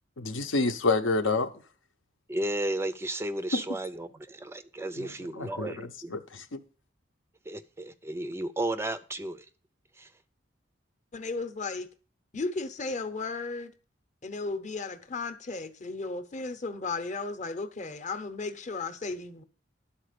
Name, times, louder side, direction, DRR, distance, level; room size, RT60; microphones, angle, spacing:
voice 1, 0.2-1.5 5.0-6.6, left 3 dB, 80° left, 0.8 m, -29 dB
voice 2, 2.3-6.1 7.5-9.5 9.9-10.1, right 1 dB, 15° right, 0.3 m, -33 dB
voice 3, 11.1-11.9 12.3-13.7 14.2-19.4, left 3 dB, 40° left, 0.8 m, -35 dB
11.5 x 4.3 x 6.6 m
head